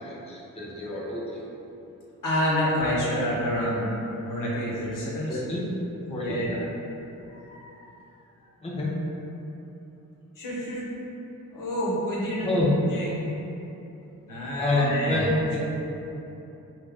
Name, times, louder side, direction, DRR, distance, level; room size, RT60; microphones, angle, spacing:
voice 1, 0.0-1.5 5.3-5.7 6.1-6.4 8.6-9.0 12.4-12.7 14.6-15.6, left 1 dB, 20° left, -6 dB, 0.7 m, -27 dB
voice 2, 2.2-3.9 4.2-5.4 6.2-6.6 7.3-7.8 10.4-10.9 11.5-12.6 12.9-13.3 14.3-15.3, equal, 70° left, -7 dB, 1.0 m, -28 dB
3.4 x 2.6 x 3.5 m, 3.0 s
cardioid pair, 70°, 34 cm